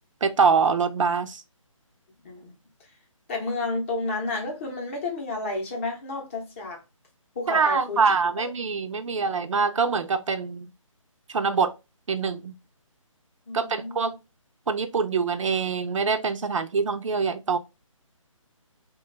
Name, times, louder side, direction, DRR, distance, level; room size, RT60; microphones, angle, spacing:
voice 1, 0.2-1.4 7.5-10.7 11.3-11.7 12.1-12.6 13.5-14.2 14.7-17.6, right 5 dB, 65° right, 0.5 m, -24 dB
voice 2, 3.3-6.8 7.4-8.0 8.4-8.5 13.5-14.1, left 3 dB, 25° left, 0.7 m, -31 dB
3.0 x 2.3 x 3.1 m
figure-of-eight pair, 160°, 17 cm